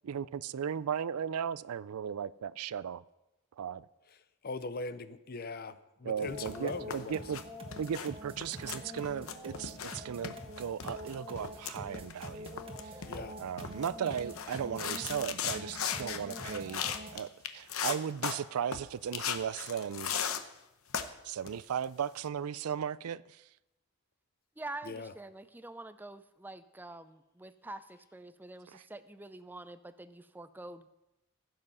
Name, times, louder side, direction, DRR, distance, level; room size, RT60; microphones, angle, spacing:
voice 1, 0.0-3.0 3.6-3.9 6.0-7.4 7.8-13.0 13.4-16.9 17.1-20.3 21.2-23.4 28.7-28.8, right 8 dB, 80° right, 0.4 m, -36 dB
voice 2, 4.4-7.2 13.1-13.4 24.8-25.1, left 3 dB, 45° left, 0.6 m, -40 dB
sound 1, 6.2-17.3, equal, 25° right, 1.4 m, -45 dB
sound 2, 6.4-7.4 7.7-8.1 8.4-10.0 10.2-17.2 17.4-18.3 18.7-18.8 19.1-20.4 20.9-21.1 21.5-21.8, left 8 dB, 70° left, 0.8 m, -37 dB
voice 3, 24.6-30.9, right 2 dB, 10° right, 0.4 m, -46 dB
15.5 x 7.8 x 5.5 m
head